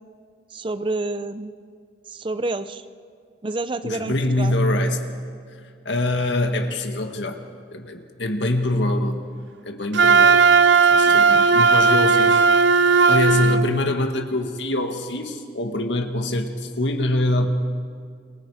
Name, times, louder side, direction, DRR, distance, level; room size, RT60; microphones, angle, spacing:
voice 1, 0.5-1.5 2.1-2.9 3.4-4.6 11.1-11.4, right 2 dB, 25° right, 12 dB, 0.6 m, -29 dB
voice 2, 3.8-5.0 5.9-7.4 7.7-9.2 9.6-10.4 10.9-12.4 13.1-17.5, left 1 dB, 80° left, 5 dB, 1.9 m, -24 dB
Wind instrument woodwind instrument, 9.9-13.7, right 4 dB, 80° right, 0.7 m, -15 dB
29.0 x 24.5 x 5.0 m, 2.2 s
head